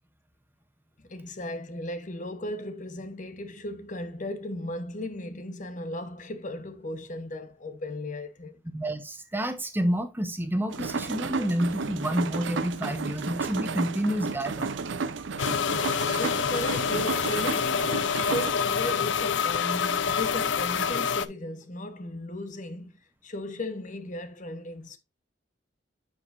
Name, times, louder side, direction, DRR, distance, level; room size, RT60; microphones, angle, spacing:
voice 1, 1.0-8.6 16.1-25.0, left 1 dB, 45° left, 0.9 m, -36 dB
voice 2, 8.7-14.7, equal, 10° right, 0.8 m, -29 dB
sound 1, 10.7-18.5, right 4 dB, 80° right, 0.6 m, -33 dB
sound 2, 15.4-21.3, left 6 dB, 80° left, 0.5 m, -27 dB
7.4 x 6.4 x 2.5 m
head